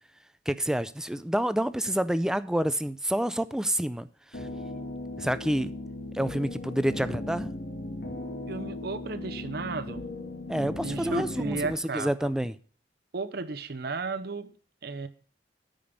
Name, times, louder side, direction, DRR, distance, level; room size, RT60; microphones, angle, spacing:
voice 1, 0.5-4.1 4.3-4.5 5.2-5.7 6.1-7.5 10.5-12.6, right 1 dB, 5° right, 0.4 m, -28 dB
sound 1, 4.3-11.7, left 1 dB, 65° left, 2.0 m, -37 dB
voice 2, 8.5-10.0 10.8-12.3 13.1-14.5 14.8-15.1, right 3 dB, 60° right, 0.8 m, -34 dB
8.9 x 5.3 x 6.8 m
head